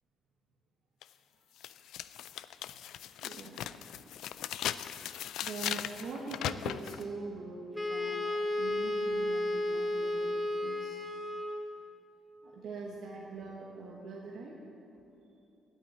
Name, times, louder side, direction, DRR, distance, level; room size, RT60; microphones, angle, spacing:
sound 1, 1.0-1.1 1.6-7.0, left 11 dB, 80° left, 0.3 m, -38 dB
voice 1, 3.2-4.2 5.4-8.1 8.6-11.0 12.4-14.6, right 3 dB, 75° right, -3 dB, 1.4 m, -43 dB
Wind instrument woodwind instrument, 7.8-11.8, left 1 dB, 10° left, 1.2 m, -33 dB
9.0 x 9.0 x 8.3 m, 2.8 s
cardioid pair, 90°, 0 cm